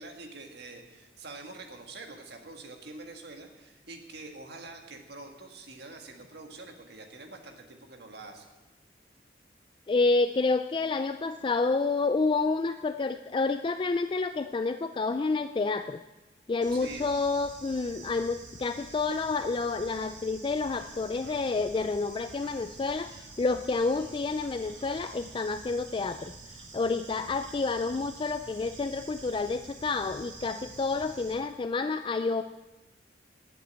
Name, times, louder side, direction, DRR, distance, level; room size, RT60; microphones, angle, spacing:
voice 1, 0.0-8.5 16.7-17.1, right 3 dB, 60° right, 4 dB, 1.7 m, -45 dB
voice 2, 9.9-16.0 16.5-32.4, left 3 dB, 25° left, 9 dB, 0.3 m, -29 dB
Bird / Insect, 16.6-31.3, right 3 dB, 90° right, 2.0 m, -47 dB
11.0 x 7.8 x 8.7 m, 1.1 s
head